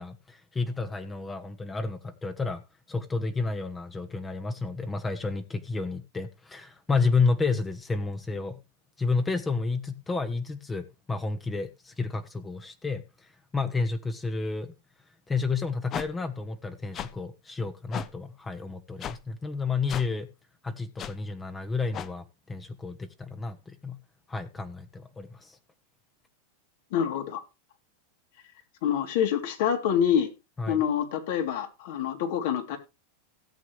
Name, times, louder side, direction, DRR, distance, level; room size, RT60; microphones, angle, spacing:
voice 1, 0.0-2.6 2.9-8.6 9.0-14.7 15.3-20.3 20.6-24.0 24.3-25.6 30.6-30.8, left 4 dB, 15° left, 1.1 m, -31 dB
sound 1, 15.9-16.1 16.9-17.1 17.9-18.1 19.0-19.2 19.9-20.1 21.0-21.1 21.9-22.1, left 9 dB, 35° left, 0.9 m, -35 dB
voice 2, 26.9-27.4 28.8-30.3 30.7-32.8, left 8 dB, 65° left, 3.0 m, -26 dB
17.0 x 7.5 x 3.2 m
hypercardioid pair, 110°, 0 cm